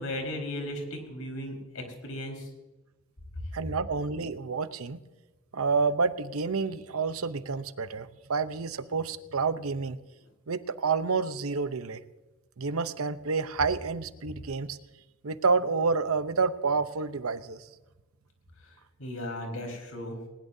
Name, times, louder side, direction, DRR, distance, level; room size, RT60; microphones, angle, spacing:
voice 1, 0.0-2.5 19.0-20.2, left 1 dB, 90° left, 2 dB, 4.7 m, -36 dB
voice 2, 3.5-5.0 5.5-10.0 10.5-12.0 12.6-14.8 15.2-17.7, right 4 dB, 90° right, 12 dB, 0.8 m, -29 dB
20.0 x 20.0 x 2.7 m, 1.1 s
head